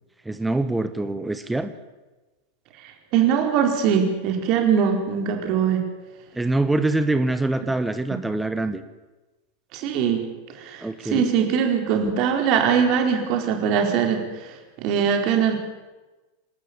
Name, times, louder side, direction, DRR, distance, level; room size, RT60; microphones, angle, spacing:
voice 1, 0.2-1.7 6.3-8.8 10.8-11.3, right 2 dB, 5° right, 10 dB, 1.2 m, -24 dB
voice 2, 3.1-5.8 9.7-10.3 10.5-15.5, right 7 dB, 40° right, 3 dB, 4.4 m, -22 dB
27.5 x 13.0 x 8.8 m, 1.2 s
figure-of-eight pair, 90°, 0 cm